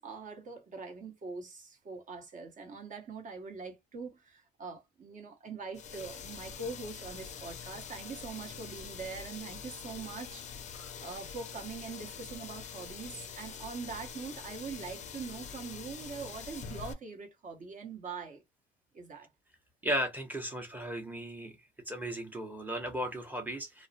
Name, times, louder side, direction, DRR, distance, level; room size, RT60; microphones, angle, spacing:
voice 1, 0.0-10.6 11.0-18.4 18.9-19.3, right 4 dB, 40° right, 1.0 m, -43 dB
sound 1, 5.7-16.9, left 7 dB, 35° left, 0.5 m, -45 dB
voice 2, 19.8-21.6 21.9-23.9, equal, 10° right, 1.0 m, -36 dB
2.3 x 2.0 x 2.7 m
supercardioid pair, 85°, 20 cm